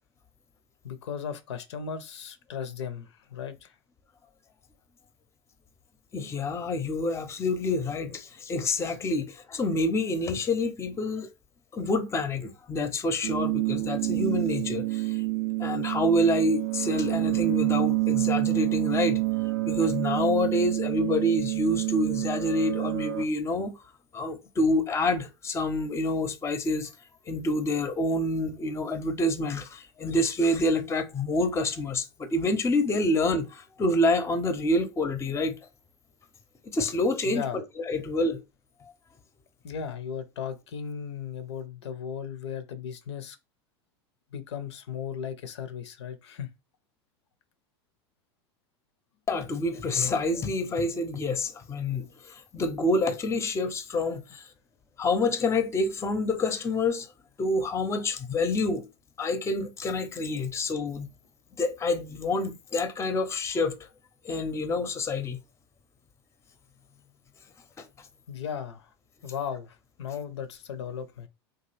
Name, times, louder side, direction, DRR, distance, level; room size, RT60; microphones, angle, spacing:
voice 1, 0.8-3.7 37.3-37.6 39.6-43.4 44.3-46.5 68.3-68.9 69.2-71.3, left 7 dB, 85° left, 0.5 m, -36 dB
voice 2, 6.1-11.3 11.7-15.2 15.6-19.2 19.7-23.7 24.1-26.9 27.3-35.6 36.6-38.4 49.3-54.5 55.0-57.1 57.4-58.9 59.2-61.1 61.6-63.8 64.2-65.4 67.8-67.9, left 2 dB, 20° left, 0.5 m, -27 dB
sound 1, 13.2-23.2, right 21 dB, 85° right, 0.4 m, -28 dB
2.8 x 2.3 x 3.1 m
hypercardioid pair, 90°, 14 cm